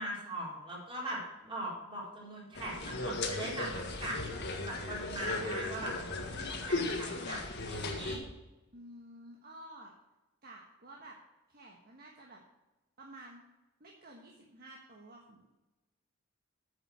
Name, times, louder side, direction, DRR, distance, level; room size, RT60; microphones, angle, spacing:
voice 1, 0.0-4.2 4.6-8.3, right 1 dB, 25° right, -4 dB, 4.2 m, -40 dB
sound 1, 2.6-8.2, left 2 dB, 50° left, 1.6 m, -36 dB
voice 2, 8.7-9.9 10.4-11.1 11.5-12.4 13.0-13.5 13.8-15.5, right 1 dB, 45° right, -1 dB, 1.4 m, -52 dB
9.2 x 7.3 x 6.3 m, 1.0 s
head